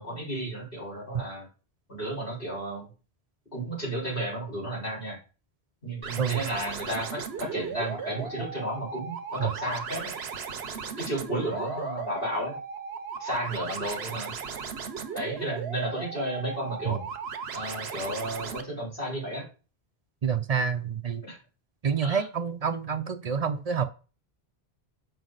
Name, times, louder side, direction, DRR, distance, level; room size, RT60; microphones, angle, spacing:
voice 1, 0.0-1.5 1.9-2.9 3.5-5.2 5.8-10.1 11.0-12.6 13.2-14.3 15.1-17.0 17.5-19.5 21.2-21.4 22.0-22.2, right 1 dB, 60° left, -6 dB, 4.5 m, -33 dB
sound 1, 6.0-18.6, right 6 dB, 75° right, 1.1 m, -37 dB
voice 2, 20.2-21.3 21.8-23.9, right 6 dB, 45° right, 9 dB, 0.6 m, -28 dB
7.9 x 5.0 x 4.0 m, 0.35 s
omnidirectional pair, 1.1 m